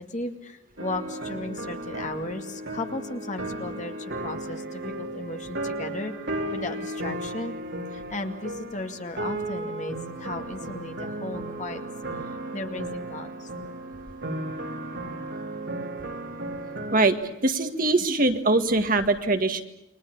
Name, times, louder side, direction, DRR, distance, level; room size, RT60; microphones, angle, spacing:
voice 1, 0.0-7.5 7.9-11.8 12.2-13.5, left 2 dB, 35° left, 5 dB, 2.2 m, -35 dB
sound 1, 0.8-17.1, right 1 dB, 65° right, 4.1 m, -35 dB
voice 2, 17.4-19.6, right 2 dB, 45° right, 7 dB, 1.8 m, -22 dB
29.5 x 23.0 x 7.1 m, 0.83 s
head